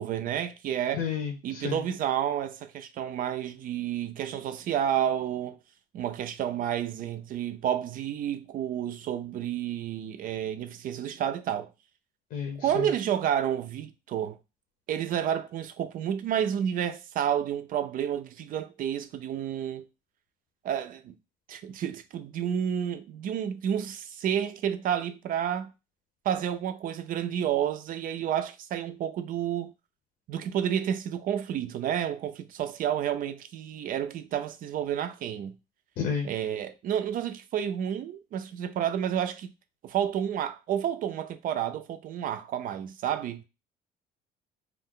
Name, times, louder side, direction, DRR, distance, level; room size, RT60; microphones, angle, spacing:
voice 1, 0.0-1.1 1.4-5.6 5.9-11.7 12.6-14.4 14.9-19.9 20.6-21.1 21.5-25.7 26.2-29.7 30.3-35.6 36.2-39.5 39.8-43.4, right 9 dB, 55° right, 0.4 m, -30 dB
voice 2, 0.9-1.8 12.3-12.9 36.0-36.3, left 7 dB, 60° left, 0.7 m, -31 dB
2.4 x 2.1 x 3.6 m
cardioid pair, 110°, 17 cm